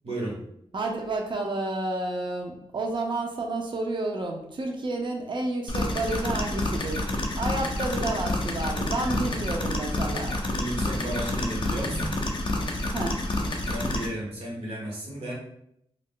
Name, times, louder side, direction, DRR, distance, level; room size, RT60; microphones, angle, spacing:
voice 1, 0.0-0.4 9.0-9.3 10.5-12.2 13.7-15.3, right 1 dB, 70° right, -3 dB, 1.1 m, -33 dB
voice 2, 0.7-7.1 7.4-10.4 12.9-13.2, right 2 dB, 50° right, 2 dB, 0.5 m, -30 dB
sound 1, 5.7-14.1, left 1 dB, 50° left, 0.5 m, -29 dB
2.3 x 2.1 x 3.6 m, 0.74 s
cardioid pair, 55°, 10 cm